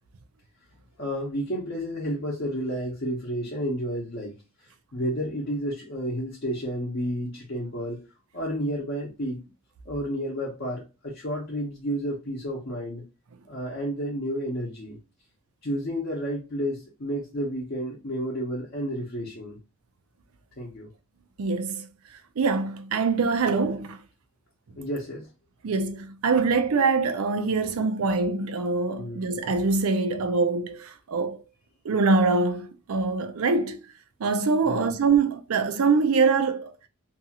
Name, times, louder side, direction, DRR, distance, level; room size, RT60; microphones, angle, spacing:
voice 1, 1.0-4.4 4.9-8.0 8.3-9.4 9.9-13.0 13.5-15.0 15.6-19.6 20.6-20.9 24.8-25.3 29.0-29.2 34.6-34.9, equal, 50° left, 0.7 m, -31 dB
voice 2, 21.4-21.9 22.4-24.0 25.6-31.4 31.8-33.8 34.2-36.7, right 4 dB, 85° right, 0.5 m, -24 dB
2.7 x 2.3 x 2.7 m
head